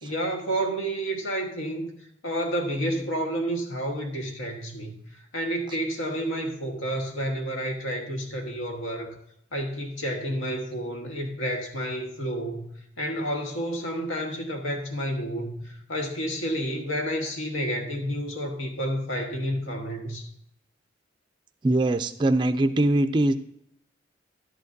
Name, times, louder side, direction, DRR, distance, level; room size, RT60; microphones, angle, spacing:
voice 1, 0.0-9.2 9.5-12.7 13.0-20.3, equal, 85° left, 3 dB, 1.4 m, -30 dB
voice 2, 21.6-23.3, right 1 dB, 25° right, 8 dB, 0.3 m, -22 dB
11.5 x 8.1 x 2.6 m, 0.70 s
head